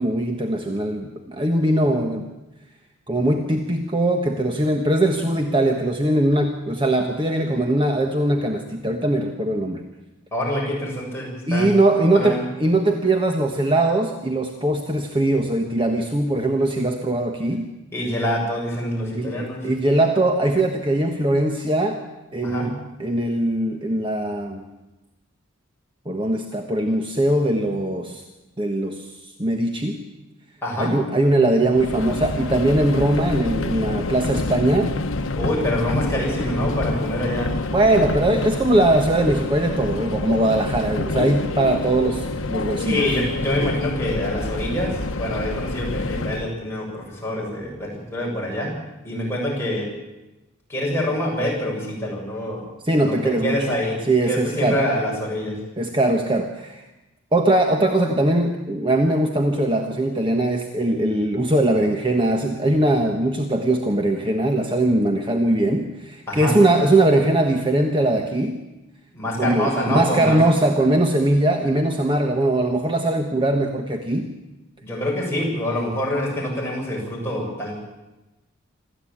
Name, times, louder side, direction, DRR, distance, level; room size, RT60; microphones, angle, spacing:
voice 1, 0.0-2.3 3.1-9.8 11.5-17.7 19.1-22.0 22.3-24.7 26.0-28.2 28.6-30.0 30.8-34.9 37.7-43.0 52.8-53.7 54.0-54.8 55.8-56.8 57.3-68.6 69.4-74.3, right 1 dB, 25° right, 4 dB, 1.3 m, -21 dB
voice 2, 10.3-11.7 12.1-12.4 17.9-19.7 22.4-22.7 30.6-30.9 35.3-37.5 42.8-48.7 49.0-49.9 50.7-52.6 53.0-54.0 54.3-55.5 66.3-66.6 69.1-70.4 74.8-77.9, left 1 dB, 10° left, -4 dB, 7.8 m, -26 dB
Subway metro underground, 31.7-46.5, left 2 dB, 70° left, 1.1 m, -27 dB
26.5 x 14.0 x 8.8 m, 1.0 s
head